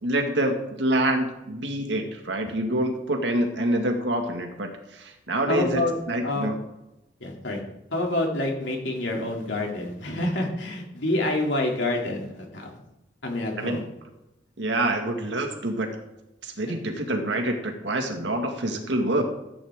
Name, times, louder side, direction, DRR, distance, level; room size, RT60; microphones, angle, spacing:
voice 1, 0.0-6.6 13.6-13.8 14.6-15.9 16.4-19.2, right 1 dB, 85° right, 4 dB, 1.9 m, -26 dB
voice 2, 5.5-5.9 6.2-6.5 7.2-7.6 7.9-12.7 13.2-13.8, left 1 dB, 90° left, 0 dB, 2.7 m, -27 dB
14.5 x 8.9 x 3.7 m, 0.93 s
head